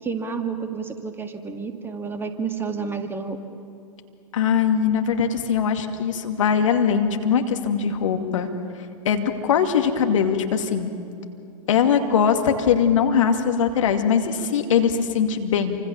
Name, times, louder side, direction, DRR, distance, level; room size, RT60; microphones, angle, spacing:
voice 1, 0.0-3.4, right 5 dB, 10° right, 6 dB, 1.8 m, -30 dB
voice 2, 4.3-8.5 9.0-10.9 11.7-15.9, left 7 dB, 60° left, 5 dB, 2.4 m, -21 dB
28.0 x 25.5 x 7.1 m, 2.6 s
figure-of-eight pair, 105°, 18 cm